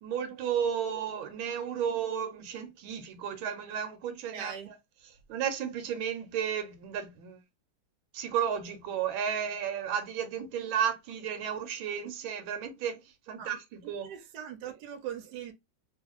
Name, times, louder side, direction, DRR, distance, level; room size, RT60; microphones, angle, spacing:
voice 1, 0.0-4.7 5.3-7.4 8.1-14.1, right 8 dB, 80° right, 1.5 m, -33 dB
voice 2, 4.3-4.7 13.4-13.5 13.8-15.5, right 9 dB, 65° right, 1.2 m, -40 dB
3.1 x 2.5 x 2.9 m
omnidirectional pair, 2.2 m